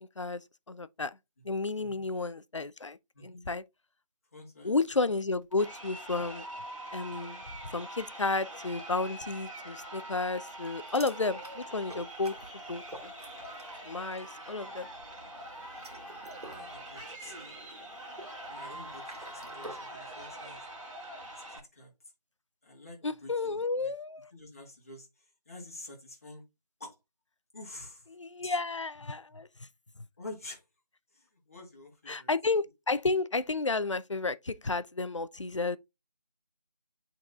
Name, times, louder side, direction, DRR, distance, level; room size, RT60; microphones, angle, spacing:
voice 1, 0.2-1.2 1.4-3.6 4.6-6.4 6.9-7.4 7.7-12.4 12.7-13.1 13.8-14.9 23.0-24.3 28.1-29.5 32.1-35.8, left 3 dB, 50° left, 0.4 m, -32 dB
voice 2, 4.3-4.7 14.3-14.9 16.5-17.6 18.5-20.6 21.3-21.9 22.6-23.9 24.3-25.1 25.5-26.4 26.8-26.9 27.5-28.1 28.4-28.6 30.2-30.6 31.1-32.3, left 2 dB, 20° left, 1.4 m, -48 dB
Crowd, 5.5-21.6, right 1 dB, 50° right, 2.2 m, -44 dB
sound 1, 10.9-13.8 14.1-14.4 15.5-19.9, right 1 dB, 70° right, 2.2 m, -49 dB
10.0 x 4.0 x 2.3 m
figure-of-eight pair, 175°, 20 cm